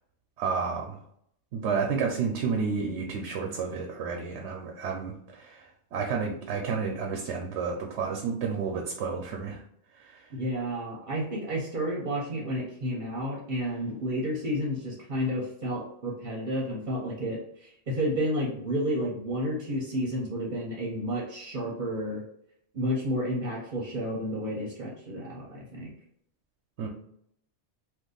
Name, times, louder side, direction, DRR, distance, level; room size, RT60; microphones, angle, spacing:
voice 1, 0.4-1.0 1.5-5.6 5.9-9.6 26.8-26.9, right 5 dB, 85° right, 1 dB, 0.9 m, -30 dB
voice 2, 10.3-22.2 22.7-25.9, equal, 50° right, -2 dB, 0.8 m, -31 dB
2.6 x 2.5 x 3.7 m, 0.70 s
omnidirectional pair, 1.1 m